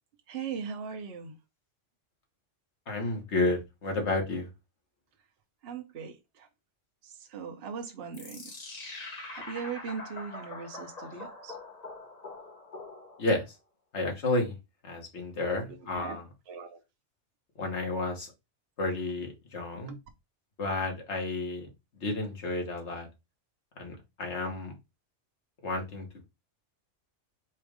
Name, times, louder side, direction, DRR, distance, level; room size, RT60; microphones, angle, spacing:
voice 1, 0.3-1.3 5.6-6.5 7.0-8.6 9.3-11.6 15.4-16.2 16.5-16.8 19.9-20.0, right 6 dB, 60° right, 1.0 m, -39 dB
voice 2, 2.9-4.5 13.2-13.6 13.9-14.6 14.8-16.2 17.6-18.3 18.8-19.9 20.6-21.7 21.9-23.1 23.8-24.7 25.6-26.2, left 2 dB, 65° left, 1.7 m, -31 dB
sound 1, 8.1-13.4, left 2 dB, 40° left, 0.9 m, -43 dB
4.4 x 2.5 x 4.8 m
omnidirectional pair, 1.2 m